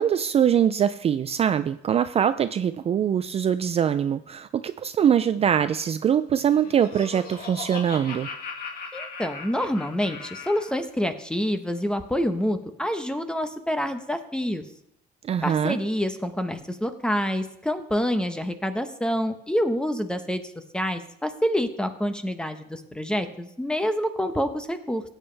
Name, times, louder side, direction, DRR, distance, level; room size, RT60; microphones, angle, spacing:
voice 1, 0.0-8.3 15.2-15.8, right 8 dB, 35° right, 12 dB, 0.4 m, -23 dB
Laughter, 6.3-10.8, left 5 dB, 60° left, 2.1 m, -38 dB
voice 2, 8.9-14.6 15.4-20.4 20.7-25.0, equal, 5° left, 8 dB, 1.0 m, -27 dB
16.5 x 8.9 x 3.4 m, 0.77 s
cardioid pair, 110°, 17 cm